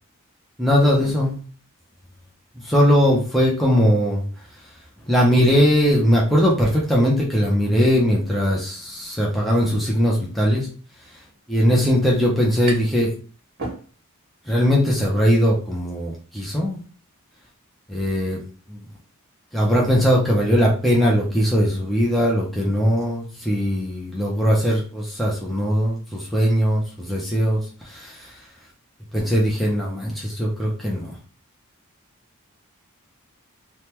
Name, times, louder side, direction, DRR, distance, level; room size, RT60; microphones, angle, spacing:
voice 1, 0.6-1.4 2.6-4.2 5.1-10.7 11.5-13.1 14.5-16.8 17.9-18.4 18.7-18.8 19.5-28.3 29.1-31.1, equal, ahead, -4 dB, 0.5 m, -20 dB
sound 1, 12.7-13.1 13.4-14.3, right 3 dB, 50° right, 1.1 m, -34 dB
3.3 x 2.2 x 2.9 m, 0.40 s
head